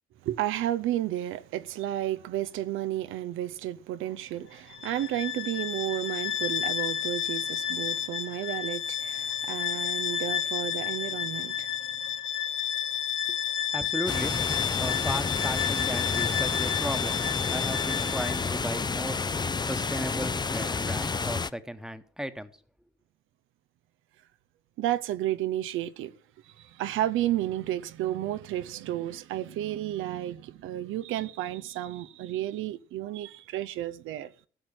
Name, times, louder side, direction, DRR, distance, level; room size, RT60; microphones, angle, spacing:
voice 1, 0.2-11.7 24.8-26.1 26.5-34.3, right 13 dB, 90° right, 0.7 m, -32 dB
Bowed string instrument, 4.7-18.6, left 9 dB, 70° left, 1.0 m, -31 dB
voice 2, 13.7-14.4 14.8-17.2 17.5-19.2 19.6-22.5, equal, 5° right, 1.2 m, -35 dB
sound 1, 14.1-21.5, left 4 dB, 20° left, 0.5 m, -30 dB
15.0 x 6.2 x 7.5 m
cardioid pair, 90°, 20 cm